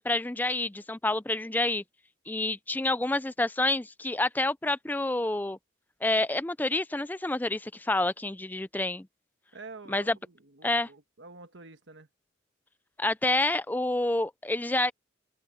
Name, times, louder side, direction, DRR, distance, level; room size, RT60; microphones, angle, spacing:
voice 1, 0.0-1.8 2.3-5.6 6.0-9.1 9.9-10.2 10.6-10.9 13.0-14.9, left 2 dB, 10° left, 0.4 m, -28 dB
voice 2, 9.5-12.1, right 3 dB, 70° right, 1.4 m, -48 dB
head